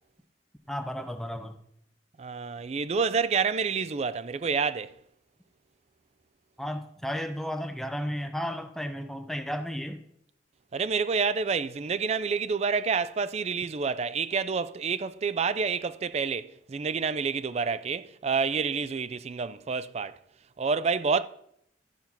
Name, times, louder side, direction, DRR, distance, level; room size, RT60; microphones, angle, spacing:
voice 1, 0.7-1.6 6.6-10.0, equal, ahead, 0.7 m, -33 dB
voice 2, 2.2-4.9 10.7-20.2 20.6-21.2, right 5 dB, 35° right, 0.4 m, -28 dB
13.0 x 4.4 x 5.7 m
head